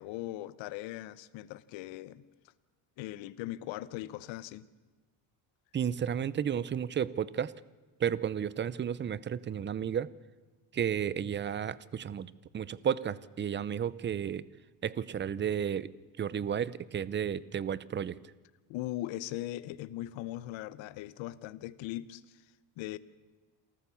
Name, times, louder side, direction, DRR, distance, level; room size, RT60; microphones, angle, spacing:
voice 1, 0.0-2.2 3.0-4.7 18.7-22.4 22.8-23.0, left 15 dB, 75° left, 17 dB, 1.0 m, -39 dB
voice 2, 5.7-7.5 8.0-10.1 10.7-14.4 14.8-15.9 16.2-18.2, right 8 dB, 25° right, 20 dB, 0.6 m, -32 dB
27.5 x 14.5 x 7.0 m, 1.3 s
cardioid pair, 130°, 46 cm